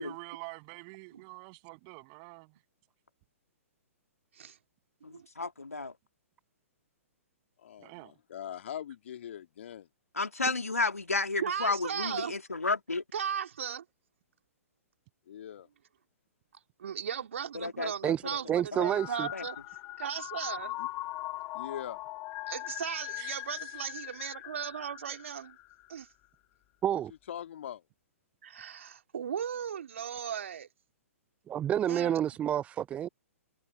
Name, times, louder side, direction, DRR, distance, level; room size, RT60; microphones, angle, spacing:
voice 1, 0.0-2.5 7.8-8.1 23.2-23.4, right 38 dB, 35° right, 7.5 m, -46 dB
voice 2, 5.0-5.9 10.1-13.0 17.5-18.4 18.8-18.9 19.3-19.4, left 3 dB, 85° left, 2.3 m, -32 dB
voice 3, 7.6-9.9 15.3-15.7 20.8-20.9 21.5-22.0 27.3-27.8, left 10 dB, 55° left, 2.2 m, -42 dB
voice 4, 11.4-12.3 13.1-13.8 16.8-19.6 20.0-20.7 22.5-25.6 25.9-26.1 28.4-30.7 31.9-32.2, right 8 dB, 60° right, 2.8 m, -36 dB
voice 5, 18.5-19.3 26.8-27.1 31.5-33.1, right 10 dB, 15° right, 0.4 m, -29 dB
sound 1, 18.8-26.0, left 18 dB, 30° left, 2.1 m, -41 dB
figure-of-eight pair, 115°, 8 cm